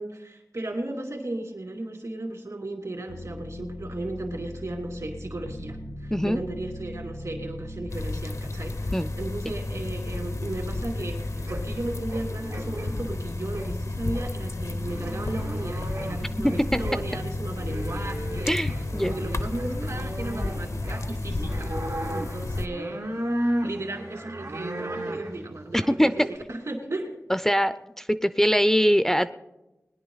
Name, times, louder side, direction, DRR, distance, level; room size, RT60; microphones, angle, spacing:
voice 1, 0.0-21.7 22.1-23.1 23.4-27.2, right 2 dB, 70° right, 2 dB, 2.7 m, -35 dB
sound 1, 3.1-12.3 12.7-21.9, left 1 dB, 85° left, 1.4 m, -38 dB
sound 2, 7.9-22.7, left 2 dB, 70° left, 0.7 m, -33 dB
sound 3, 10.5-26.4, right 1 dB, 90° right, 1.4 m, -36 dB
voice 2, 16.4-16.8 18.5-19.1 25.7-26.1 27.3-29.3, equal, 5° left, 12 dB, 0.4 m, -23 dB
20.5 x 10.0 x 3.9 m, 0.98 s
wide cardioid pair, 65°, 5 cm